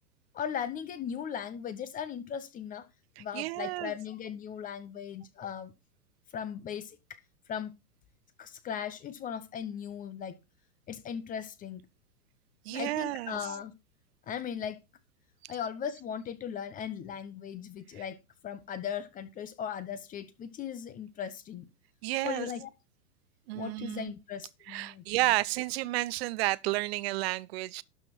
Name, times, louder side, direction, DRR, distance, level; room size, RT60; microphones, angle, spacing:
voice 1, 0.3-2.9 3.2-5.7 6.3-7.2 7.5-7.8 8.4-10.4 10.9-11.9 12.7-13.7 14.3-14.8 15.5-18.2 18.4-21.7 22.2-22.7 23.5-25.0, left 8 dB, 15° left, 0.7 m, -38 dB
voice 2, 3.2-3.9 12.6-13.4 15.4-15.5 18.0-18.1 22.0-22.5 23.5-24.1 24.7-27.8, right 19 dB, 40° right, 0.6 m, -31 dB
12.0 x 6.0 x 4.4 m
hypercardioid pair, 115°, 48 cm